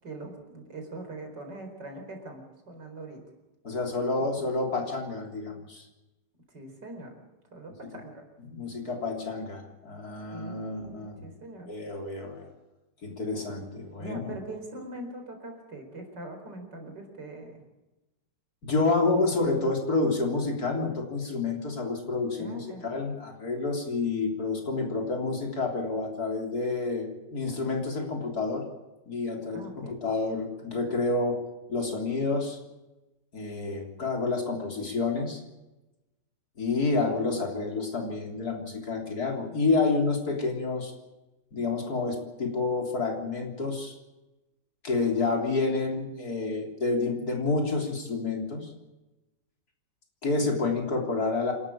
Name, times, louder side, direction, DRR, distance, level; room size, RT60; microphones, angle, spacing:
voice 1, 0.0-3.2 4.2-4.5 6.5-7.1 7.5-8.2 10.3-11.7 14.0-17.6 19.0-19.2 19.4-19.7 22.4-22.9 29.5-30.0, right 2 dB, 75° right, 4 dB, 5.2 m, -42 dB
voice 2, 3.6-5.9 8.4-11.3 11.7-12.5 13.0-14.2 18.6-28.7 29.1-31.4 31.7-32.6 33.3-35.4 36.6-40.9 41.5-44.0 44.8-48.7 50.2-51.5, left 3 dB, 60° left, 1 dB, 4.0 m, -29 dB
27.5 x 12.5 x 8.7 m, 1.0 s
omnidirectional pair, 1.9 m